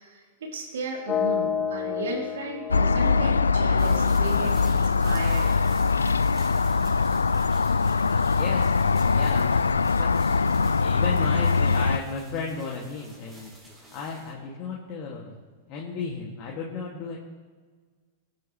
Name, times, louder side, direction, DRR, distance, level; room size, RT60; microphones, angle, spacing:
voice 1, 0.0-5.6, right 4 dB, 70° right, -1 dB, 3.4 m, -35 dB
sound 1, 1.1-5.0, left 8 dB, 25° left, 1.1 m, -31 dB
sound 2, 2.7-12.0, left 4 dB, 85° left, 0.3 m, -22 dB
sound 3, 3.8-14.3, right 1 dB, 15° right, 5.4 m, -49 dB
voice 2, 8.4-8.7 9.1-9.6 9.9-15.4 15.7-17.2, left 5 dB, 40° left, -3 dB, 2.5 m, -35 dB
23.0 x 11.0 x 3.3 m, 1.5 s
figure-of-eight pair, 95°, 0 cm